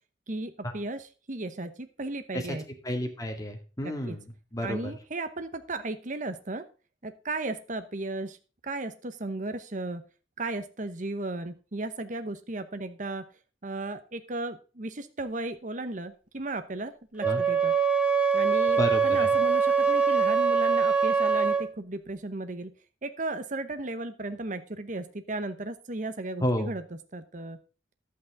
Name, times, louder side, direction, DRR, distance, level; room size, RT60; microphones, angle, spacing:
voice 1, 0.3-2.6 3.8-4.2 4.6-6.6 7.0-8.4 8.6-10.0 10.4-13.2 13.6-17.7 18.3-22.7 23.0-26.8 27.1-27.6, right 2 dB, 45° right, 10 dB, 0.9 m, -35 dB
voice 2, 2.8-4.9 17.2-17.4 18.8-19.3 26.4-26.7, equal, 20° left, 3 dB, 2.1 m, -31 dB
Wind instrument woodwind instrument, 17.2-21.7, right 5 dB, 5° right, 1.0 m, -23 dB
11.5 x 8.6 x 3.6 m, 0.35 s
head